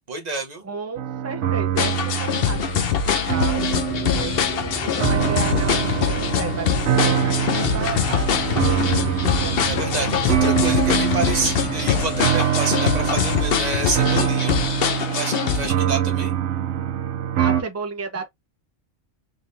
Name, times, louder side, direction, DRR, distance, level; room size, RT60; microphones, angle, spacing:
voice 1, 0.1-0.6 9.7-14.5 15.1-16.3, right 3 dB, 35° right, 1.2 m, -28 dB
voice 2, 0.6-2.6 3.1-9.6 17.4-18.3, right 4 dB, 15° right, 0.7 m, -33 dB
sound 1, 1.0-17.6, right 10 dB, 70° right, 1.0 m, -24 dB
sound 2, 1.8-15.7, left 8 dB, 60° left, 0.8 m, -23 dB
sound 3, 3.9-12.4, left 1 dB, 30° left, 0.9 m, -33 dB
3.8 x 3.3 x 2.7 m
omnidirectional pair, 1.3 m